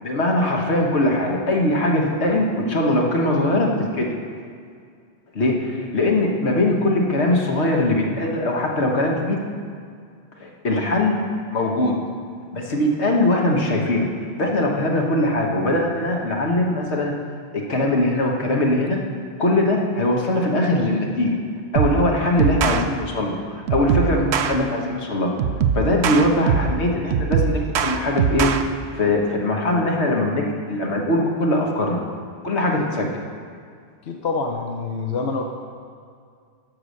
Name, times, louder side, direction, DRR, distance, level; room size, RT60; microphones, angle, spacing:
voice 1, 0.0-4.1 5.3-9.4 10.4-11.2 11.5-12.0 12.5-14.1 14.4-17.1 17.5-19.0 19.4-21.4 21.7-25.3 25.7-28.5 29.0-32.0 32.4-33.2, left 1 dB, 85° left, 0 dB, 1.6 m, -21 dB
sound 1, 21.8-22.1 22.4-22.8 23.7-24.5 25.4-26.8 27.1-28.6, right 7 dB, 90° right, 0.9 m, -21 dB
voice 2, 34.0-35.4, left 4 dB, 70° left, 2 dB, 1.0 m, -26 dB
12.5 x 4.9 x 6.4 m, 2.2 s
omnidirectional pair, 1.1 m